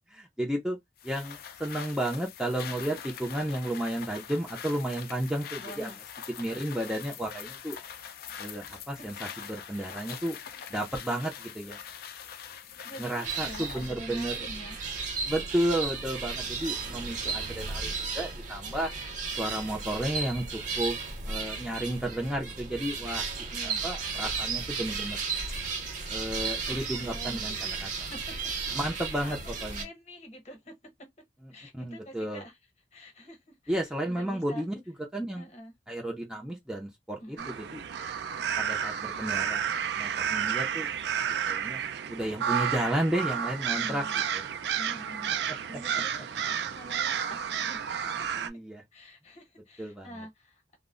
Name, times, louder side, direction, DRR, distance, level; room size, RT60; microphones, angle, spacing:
voice 1, 0.1-0.8 1.0-5.9 6.4-7.8 8.4-10.4 10.7-11.8 13.0-14.5 15.2-18.9 19.4-21.0 21.3-23.3 23.6-25.2 26.1-27.9 28.7-29.9 31.4-32.4 33.7-35.5 35.9-37.8 38.6-39.6 40.0-40.9 41.1-41.8 42.1-44.0 44.3-44.4 48.3-48.8 49.8-50.3, right 1 dB, 5° right, 0.5 m, -33 dB
sound 1, 1.0-14.0, left 8 dB, 55° left, 0.4 m, -43 dB
voice 2, 5.6-6.0 9.0-9.1 9.7-10.0 12.8-14.8 16.6-16.8 17.4-17.6 23.5-23.9 26.6-26.8 27.1-28.3 28.8-28.9 29.2-29.4 29.8-31.1 31.5-32.5 32.9-33.7 34.1-34.6 35.4-35.7 37.2-37.5 43.7-44.2 44.7-45.4 45.7-48.4 48.9-50.8, equal, 40° left, 0.9 m, -46 dB
sound 2, 13.2-29.8, right 4 dB, 45° right, 0.7 m, -34 dB
sound 3, 37.4-48.5, right 8 dB, 65° right, 0.4 m, -31 dB
2.0 x 2.0 x 3.6 m
head